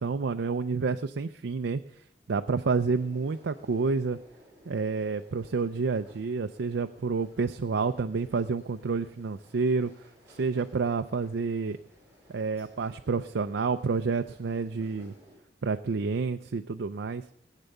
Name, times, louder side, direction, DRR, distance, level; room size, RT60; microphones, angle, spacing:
voice 1, 0.0-1.8 2.3-4.2 4.7-9.9 10.3-11.8 12.3-15.1 15.6-17.2, right 4 dB, 90° right, 7 dB, 0.5 m, -29 dB
sound 1, 2.9-15.4, equal, 15° right, 7.1 m, -58 dB
19.0 x 8.2 x 6.7 m, 0.77 s
head